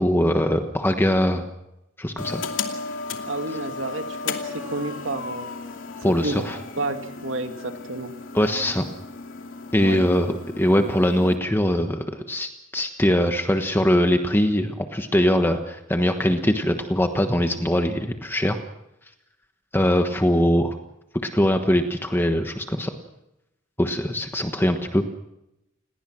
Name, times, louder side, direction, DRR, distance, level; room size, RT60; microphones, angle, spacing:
voice 1, 0.0-1.4 2.0-2.4 6.0-6.6 8.3-8.8 9.7-18.6 19.7-20.8 21.2-22.9 23.8-25.0, equal, 10° left, 6 dB, 1.3 m, -22 dB
sound 1, 2.2-11.4, left 4 dB, 80° left, 2.7 m, -35 dB
voice 2, 3.3-5.5 6.2-6.4 6.8-8.1 9.8-10.0, right 2 dB, 80° right, 6 dB, 2.4 m, -30 dB
29.0 x 19.5 x 6.3 m, 0.88 s
head